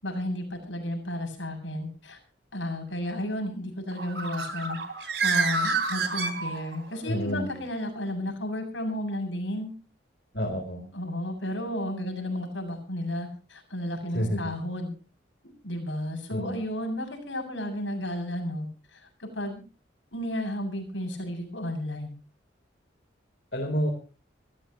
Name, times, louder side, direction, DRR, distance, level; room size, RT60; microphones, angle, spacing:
voice 1, 0.0-2.2 2.5-9.7 10.9-14.9 15.6-18.7 18.9-19.6 20.1-22.1, left 1 dB, 70° left, 4 dB, 7.5 m, -33 dB
Bird, 3.9-7.0, right 4 dB, 60° right, 3.1 m, -28 dB
voice 2, 7.0-7.6 10.3-10.9 14.1-14.5 16.3-16.6 23.5-23.9, equal, 55° left, 1 dB, 3.9 m, -29 dB
25.0 x 14.5 x 3.1 m, 0.36 s
head